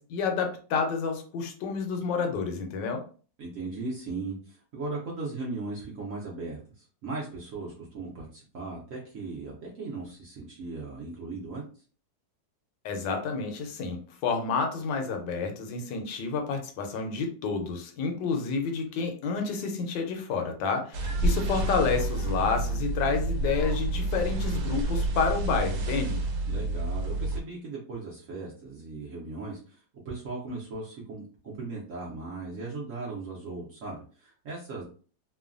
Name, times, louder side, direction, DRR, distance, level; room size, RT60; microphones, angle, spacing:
voice 1, 0.0-3.0 12.8-26.2, left 5 dB, 80° left, 4 dB, 1.2 m, -29 dB
voice 2, 3.4-11.6 26.5-34.8, right 3 dB, 65° right, -3 dB, 0.8 m, -38 dB
sound 1, 20.9-27.4, right 2 dB, 90° right, 1.3 m, -29 dB
3.0 x 2.1 x 2.4 m, 0.40 s
omnidirectional pair, 2.0 m